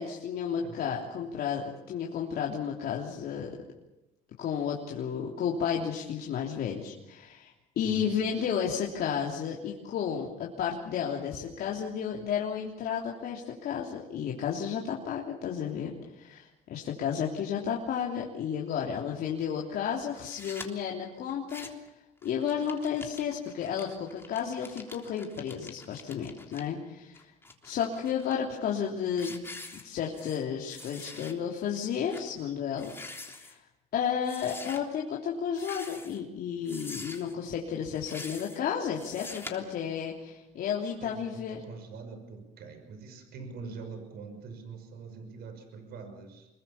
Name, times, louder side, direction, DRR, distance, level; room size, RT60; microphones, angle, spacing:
voice 1, 0.0-3.5 4.4-21.7 22.2-27.3 27.6-29.5 29.8-32.9 33.3-33.6 33.9-41.7, left 7 dB, 65° left, -1 dB, 3.2 m, -32 dB
voice 2, 0.6-0.9 7.8-8.2 41.0-46.5, right 4 dB, 70° right, 7 dB, 5.9 m, -44 dB
sound 1, 20.1-20.7 21.3-21.9 22.2-26.6 27.1-28.3 28.8-28.9 29.2-30.4 30.7-31.3 31.7-31.8 32.1-32.3 32.7-33.5 34.2-34.8 35.5-36.2 36.6-37.3 37.9-38.6 38.9-39.5, left 2 dB, 15° left, 3.5 m, -45 dB
25.5 x 22.0 x 7.2 m, 0.93 s
cardioid pair, 110°, 17 cm